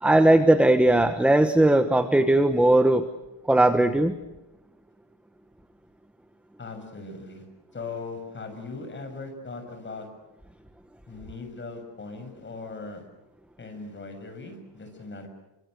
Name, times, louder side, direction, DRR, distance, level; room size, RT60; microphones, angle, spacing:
voice 1, 0.0-3.1 3.5-4.2, right 1 dB, 5° right, 9 dB, 1.1 m, -19 dB
voice 2, 6.6-7.5 7.7-10.1 11.1-13.1 13.6-15.3, left 3 dB, 25° left, 6 dB, 6.8 m, -39 dB
29.5 x 25.5 x 6.5 m, 0.98 s
cardioid pair, 145°, 46 cm